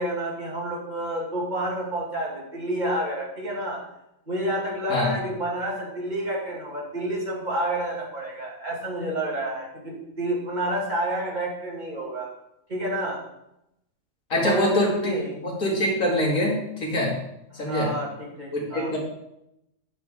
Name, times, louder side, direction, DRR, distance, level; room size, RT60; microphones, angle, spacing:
voice 1, 0.0-3.8 4.3-12.3 12.7-13.2 14.3-15.3 17.5-18.9, right 1 dB, 35° right, -4 dB, 2.4 m, -29 dB
voice 2, 14.3-15.1 15.4-17.1 17.6-17.9 18.5-19.0, left 1 dB, 80° left, -3 dB, 2.7 m, -24 dB
9.0 x 6.3 x 3.7 m, 0.83 s
omnidirectional pair, 1.4 m